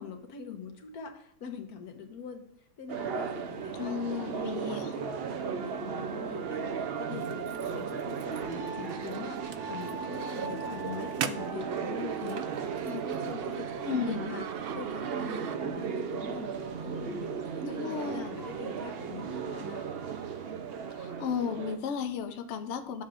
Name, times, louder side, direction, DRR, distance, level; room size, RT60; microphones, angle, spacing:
voice 1, 0.0-2.4 2.8-19.8, left 6 dB, 85° left, 4 dB, 1.5 m, -43 dB
sound 1, 2.9-21.8, right 6 dB, 55° right, 0.7 m, -36 dB
voice 2, 3.7-5.0 13.8-14.2 17.6-18.3 20.9-23.0, left 7 dB, 60° left, 7 dB, 0.9 m, -34 dB
sound 2, 7.1-15.9, right 7 dB, 85° right, 0.5 m, -43 dB
10.0 x 7.1 x 2.5 m, 0.68 s
omnidirectional pair, 1.6 m